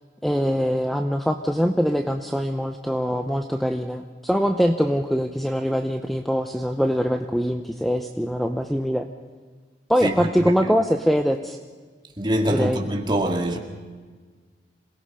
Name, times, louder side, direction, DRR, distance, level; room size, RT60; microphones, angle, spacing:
voice 1, 0.2-9.1 9.9-11.6 12.5-12.8, equal, ahead, 0.7 m, -23 dB
voice 2, 10.0-10.5 12.2-13.6, equal, 25° right, 2.2 m, -24 dB
26.5 x 18.0 x 5.6 m
head